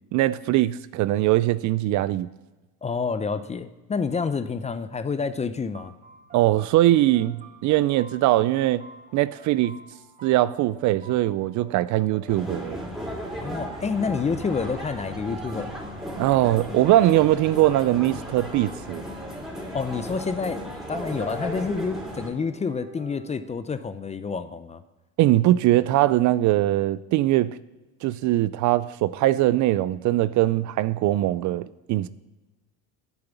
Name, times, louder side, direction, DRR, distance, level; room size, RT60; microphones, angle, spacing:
voice 1, 0.1-2.3 6.3-8.9 9.1-9.8 10.2-12.8 16.2-19.0 25.2-27.6 28.0-32.1, right 15 dB, 50° right, 0.4 m, -21 dB
voice 2, 2.8-5.9 13.4-15.7 19.7-20.6 20.9-24.8, left 5 dB, 15° left, 0.5 m, -28 dB
sound 1, 5.7-23.5, right 4 dB, 20° right, 1.5 m, -49 dB
sound 2, 12.3-22.3, equal, ahead, 3.6 m, -35 dB
9.5 x 7.1 x 8.1 m
supercardioid pair, 105°, 39 cm